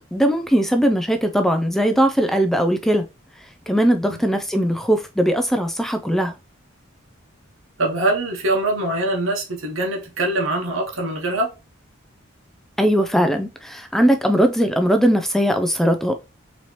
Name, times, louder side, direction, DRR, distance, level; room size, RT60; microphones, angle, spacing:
voice 1, 0.1-3.0 3.7-6.3 12.8-16.1, equal, ahead, 0.3 m, -19 dB
voice 2, 7.8-11.5, right 2 dB, 75° right, 1.0 m, -23 dB
4.1 x 2.9 x 3.1 m
head